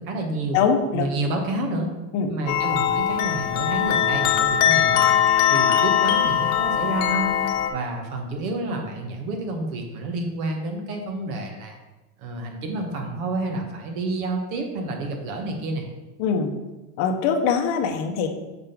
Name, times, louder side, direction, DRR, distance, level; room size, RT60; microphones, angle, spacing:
voice 1, 0.0-0.6 0.9-1.9 2.3-5.2 5.5-7.3 7.7-11.8 12.2-15.9, right 2 dB, 70° right, 3 dB, 1.3 m, -29 dB
voice 2, 0.5-1.1 2.1-2.3 16.2-16.5 17.0-18.3, left 6 dB, 40° left, 3 dB, 0.7 m, -22 dB
sound 1, 2.5-7.7, left 9 dB, 75° left, 0.8 m, -21 dB
5.9 x 3.6 x 5.8 m, 1.1 s
cardioid pair, 170°, 44 cm